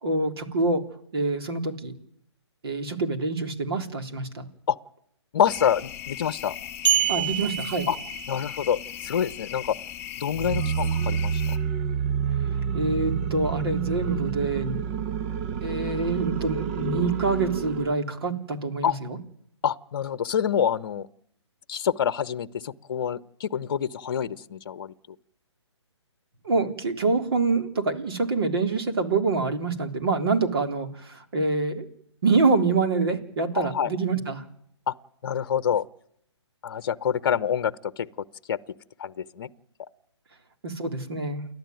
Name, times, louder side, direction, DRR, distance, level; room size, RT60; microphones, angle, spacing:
voice 1, 0.0-0.8 1.1-1.9 2.6-4.4 7.1-7.9 12.7-14.8 15.6-19.2 26.4-31.9 32.2-34.4 40.6-41.4, right 3 dB, 55° right, 3.7 m, -26 dB
voice 2, 5.3-6.6 7.2-7.3 7.9-8.0 8.3-9.8 10.2-11.6 18.8-19.0 19.6-21.1 21.7-24.9 33.5-33.9 34.9-35.0 35.2-35.8 36.6-38.1 38.5-38.6 39.0-39.5, left 8 dB, 45° left, 0.9 m, -26 dB
sound 1, 5.5-11.6, left 11 dB, 15° left, 2.2 m, -39 dB
sound 2, 6.8-8.7, right 9 dB, 85° right, 2.8 m, -26 dB
sound 3, 10.3-18.0, right 7 dB, 25° right, 0.9 m, -28 dB
29.5 x 12.0 x 9.3 m
figure-of-eight pair, 140°, 15 cm